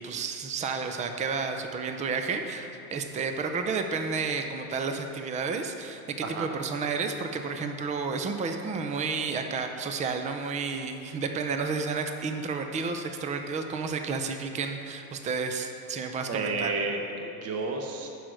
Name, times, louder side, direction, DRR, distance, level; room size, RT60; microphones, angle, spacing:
voice 1, 0.0-16.7, right 4 dB, 15° right, 6 dB, 0.6 m, -31 dB
voice 2, 16.3-18.1, right 3 dB, 30° right, 3 dB, 1.1 m, -31 dB
11.0 x 5.0 x 6.2 m, 2.8 s
hypercardioid pair, 110°, 46 cm